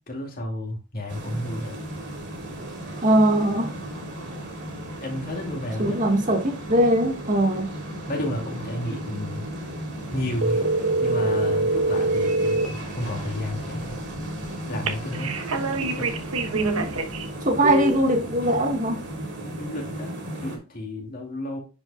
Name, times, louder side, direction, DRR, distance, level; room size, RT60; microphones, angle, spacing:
voice 1, 0.1-1.8 5.0-6.1 8.1-9.5 10.1-10.6 11.0-14.0 14.7-15.4 15.8-16.1 19.5-21.6, left 1 dB, 40° left, 2.4 m, -32 dB
sound 1, 1.1-20.6, right 1 dB, 55° right, 2.8 m, -35 dB
voice 2, 3.0-3.7 5.8-7.7 16.5-16.9 17.4-19.0, right 1 dB, 35° right, 1.6 m, -21 dB
sound 2, 10.4-12.7 14.9-17.3 17.6-17.9, right 2 dB, 80° right, 1.1 m, -24 dB
10.0 x 5.3 x 2.3 m
head